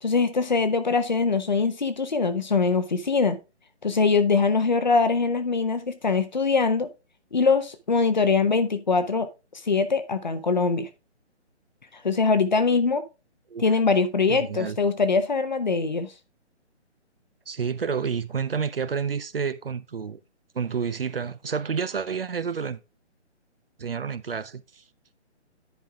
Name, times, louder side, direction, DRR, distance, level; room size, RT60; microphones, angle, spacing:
voice 1, 0.0-3.4 3.8-6.9 7.3-10.9 12.0-13.0 13.6-16.1, left 4 dB, 40° left, 0.9 m, -23 dB
voice 2, 14.3-14.8 17.5-20.2 20.5-22.8 23.8-24.8, right 6 dB, 55° right, 0.6 m, -29 dB
10.5 x 5.5 x 3.5 m
hypercardioid pair, 175°, 35 cm